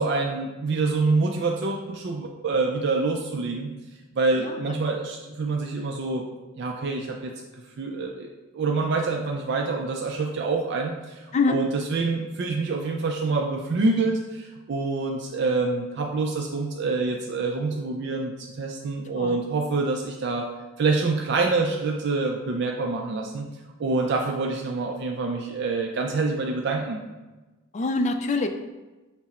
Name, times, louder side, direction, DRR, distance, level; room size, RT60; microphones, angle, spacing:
voice 1, 0.0-3.7 4.1-6.2 6.6-8.3 8.5-20.5 20.8-23.5 23.8-27.0, right 3 dB, 55° right, 1 dB, 0.4 m, -26 dB
voice 2, 27.7-28.5, left 3 dB, 35° left, 7 dB, 0.3 m, -24 dB
6.0 x 2.1 x 4.1 m, 1.2 s
head